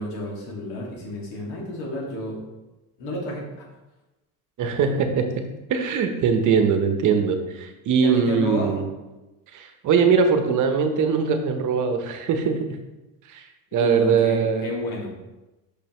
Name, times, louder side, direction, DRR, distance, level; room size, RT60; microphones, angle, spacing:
voice 1, 0.0-2.4 3.0-3.7 8.0-8.8 13.7-15.1, left 1 dB, 70° left, -2 dB, 2.1 m, -32 dB
voice 2, 4.6-5.2 5.7-8.8 9.5-12.6 13.3-13.4 13.7-14.7, right 6 dB, 50° right, 6 dB, 0.9 m, -21 dB
6.5 x 5.3 x 3.0 m, 1.1 s
cardioid pair, 135°, 38 cm